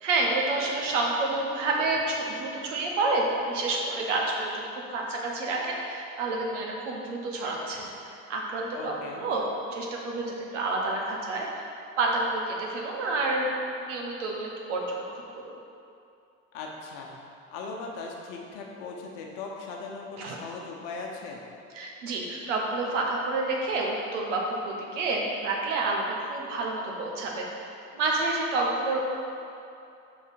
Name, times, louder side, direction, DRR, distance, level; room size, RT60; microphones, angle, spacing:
voice 1, 0.0-9.4 9.7-13.5 13.8-15.5 20.2-20.4 21.7-29.0, right 2 dB, 80° right, -1 dB, 1.0 m, -29 dB
voice 2, 8.7-9.2 16.5-17.2 17.5-21.5, left 4 dB, 65° left, 0 dB, 1.0 m, -39 dB
5.4 x 4.0 x 5.1 m, 2.6 s
hypercardioid pair, 60°, 37 cm